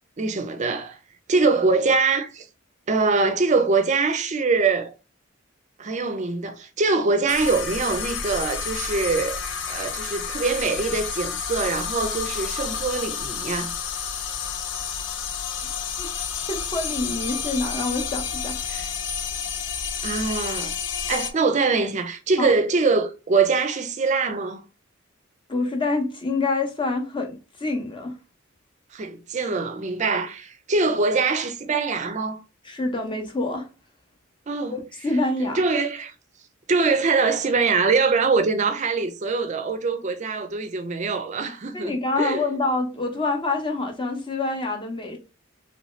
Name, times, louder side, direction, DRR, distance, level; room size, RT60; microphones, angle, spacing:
voice 1, 0.2-1.0 1.3-2.5 2.9-4.9 5.8-9.4 9.7-13.7 18.7-18.9 20.0-20.7 21.1-24.6 28.9-32.4 34.5-34.8 35.4-36.1 36.7-42.4, right 4 dB, 35° right, 0.4 m, -23 dB
sound 1, 7.3-21.3, left 6 dB, 60° left, 0.5 m, -30 dB
voice 2, 16.4-18.9 22.4-22.5 25.5-28.2 32.6-33.7 34.7-35.6 41.7-45.2, left 2 dB, 25° left, 0.7 m, -27 dB
3.0 x 2.7 x 3.1 m
head